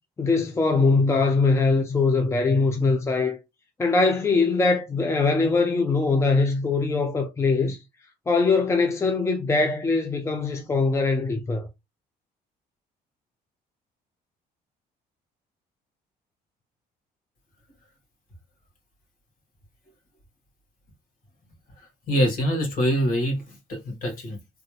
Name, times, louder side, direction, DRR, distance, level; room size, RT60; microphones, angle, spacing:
voice 1, 0.2-3.4 3.8-7.8 8.3-11.7, left 3 dB, 15° left, 0.6 m, -22 dB
voice 2, 22.1-23.4 23.7-24.4, equal, 55° left, 1.9 m, -24 dB
3.3 x 3.1 x 2.3 m
cardioid pair, 110°, 17 cm